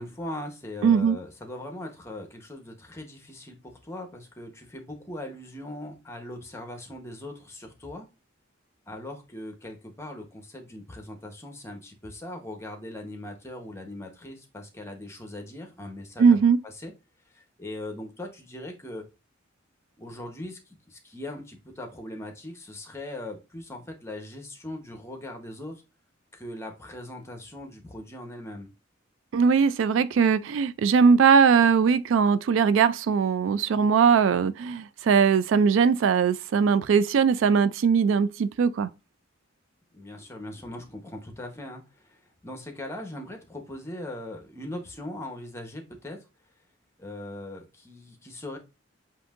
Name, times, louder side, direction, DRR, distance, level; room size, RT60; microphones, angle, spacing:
voice 1, 0.0-8.1 8.9-16.4 16.6-16.9 17.3-19.0 20.0-20.6 20.9-25.8 26.3-28.7 39.9-46.2 47.0-48.6, left 1 dB, 15° left, 1.0 m, -40 dB
voice 2, 0.8-1.2 16.2-16.6 29.3-38.9, right 6 dB, 75° right, 0.3 m, -20 dB
7.7 x 2.7 x 2.5 m
head